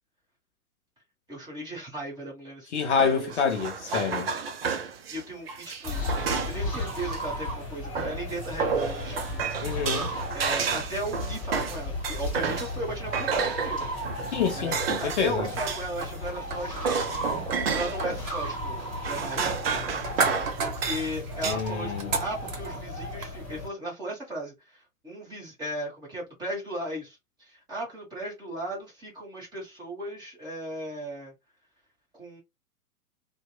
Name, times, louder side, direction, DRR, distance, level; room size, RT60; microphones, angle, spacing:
voice 1, 1.3-3.6 5.1-6.1 6.5-9.4 10.3-13.9 14.5-17.1 17.5-18.8 19.0-19.9 20.6-31.3 32.1-32.4, right 1 dB, 10° right, 1.0 m, -36 dB
voice 2, 2.7-4.3 9.6-10.1 14.3-15.5 21.5-22.1, left 6 dB, 50° left, 0.6 m, -27 dB
ambience foley kitchen, 3.0-7.2 7.9-12.8 13.1-16.0 16.3-18.2 18.8-21.5, right 6 dB, 45° right, 0.4 m, -31 dB
sound 1, 5.8-23.7, left 1 dB, 20° left, 1.2 m, -35 dB
sound 2, 16.0-23.3, right 4 dB, 60° right, 0.9 m, -36 dB
2.8 x 2.1 x 2.2 m
figure-of-eight pair, 110°, 46 cm